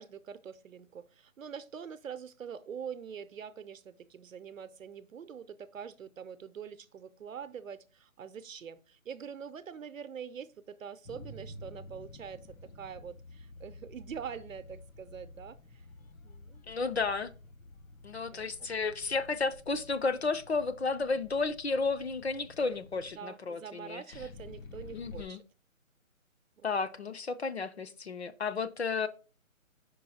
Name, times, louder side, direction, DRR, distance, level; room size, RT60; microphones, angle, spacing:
voice 1, 0.0-15.8 16.2-16.6 18.3-18.8 23.0-25.4 26.6-26.7 27.0-27.1, right 7 dB, 70° right, 0.7 m, -44 dB
sound 1, 11.1-23.1 24.1-25.2, left 2 dB, 80° left, 0.9 m, -51 dB
voice 2, 16.7-17.3 18.0-24.2 24.9-25.4 26.6-29.1, left 4 dB, 55° left, 0.5 m, -32 dB
5.4 x 4.6 x 4.1 m
hypercardioid pair, 180°, 41 cm